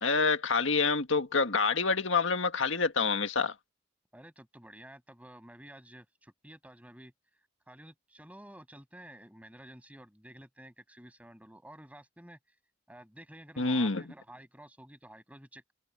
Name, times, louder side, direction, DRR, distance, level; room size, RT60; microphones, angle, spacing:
voice 1, 0.0-3.5 13.6-14.0, left 4 dB, 70° left, 1.8 m, -27 dB
voice 2, 4.1-7.1 7.7-12.6 12.9-15.7, right 1 dB, 5° right, 7.4 m, -51 dB
open air
head